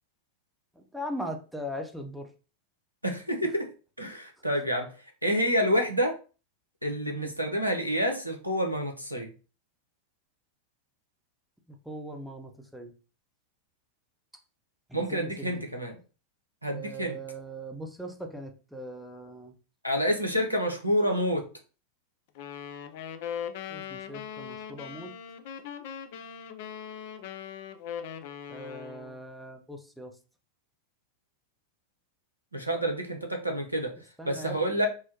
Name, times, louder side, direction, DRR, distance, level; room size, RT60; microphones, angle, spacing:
voice 1, 0.8-2.3 7.1-7.3 11.9-12.9 14.9-15.6 16.7-19.5 23.7-25.1 28.5-30.1 34.2-34.8, equal, ahead, 3 dB, 0.5 m, -40 dB
voice 2, 3.0-3.7 4.0-4.9 5.2-6.2 6.8-9.3 14.9-16.0 16.6-17.2 19.8-21.4 32.5-33.9 34.2-34.9, equal, 90° right, 3 dB, 0.6 m, -28 dB
sound 1, 22.3-29.2, left 8 dB, 50° left, 0.3 m, -40 dB
3.7 x 2.0 x 2.8 m, 0.35 s
figure-of-eight pair, 90°, 0 cm